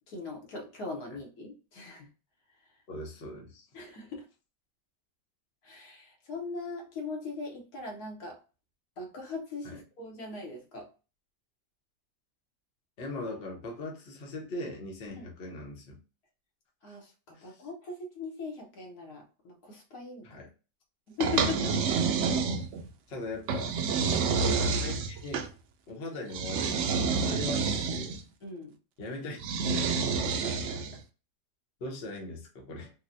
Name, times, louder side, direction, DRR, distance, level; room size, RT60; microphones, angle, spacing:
voice 1, 0.1-2.1 3.7-4.2 5.6-8.4 9.0-10.9 15.2-15.3 16.8-20.4 21.1-21.7 24.0-24.3 28.4-28.7 30.2-30.8, left 4 dB, 65° left, 1 dB, 1.3 m, -39 dB
voice 2, 2.9-3.7 9.6-9.8 13.0-16.0 17.3-17.7 20.2-20.5 23.1-23.8 24.7-25.5 25.9-28.2 29.0-29.4 29.7-29.9 31.8-32.9, left 2 dB, 45° left, -1 dB, 1.0 m, -40 dB
sound 1, 21.2-22.9 23.5-25.5 26.3-28.2 29.4-31.0, right 5 dB, 80° right, 0.6 m, -28 dB
4.1 x 2.3 x 2.6 m, 0.33 s
omnidirectional pair, 1.8 m